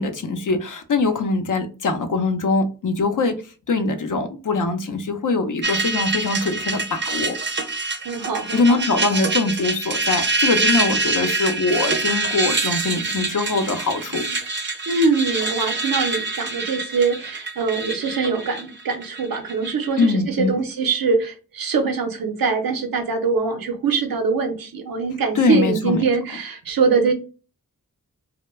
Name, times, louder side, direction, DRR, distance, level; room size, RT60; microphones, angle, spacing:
voice 1, 0.0-3.3 3.7-7.4 8.5-14.4 20.0-20.6 25.3-26.0, left 3 dB, 65° left, 0.6 m, -22 dB
sound 1, 5.6-20.1, right 3 dB, 35° right, 0.5 m, -25 dB
voice 2, 8.0-8.6 14.9-27.1, right 4 dB, 85° right, 0.7 m, -23 dB
2.2 x 2.1 x 3.0 m
cardioid pair, 50°, 34 cm